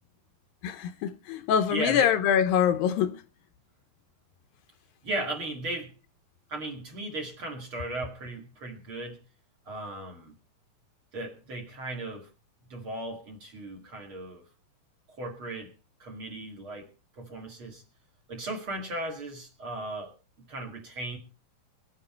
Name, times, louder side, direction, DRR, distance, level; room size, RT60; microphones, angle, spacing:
voice 1, 0.6-3.2, left 8 dB, 75° left, 2.5 m, -24 dB
voice 2, 1.7-2.1 5.0-5.9 6.5-9.2 9.7-10.4 11.1-12.3 12.7-14.4 15.1-15.7 16.0-16.9 17.1-17.8 18.3-20.1 20.4-21.2, right 2 dB, 40° right, 3.0 m, -36 dB
23.0 x 8.8 x 4.4 m
omnidirectional pair, 4.3 m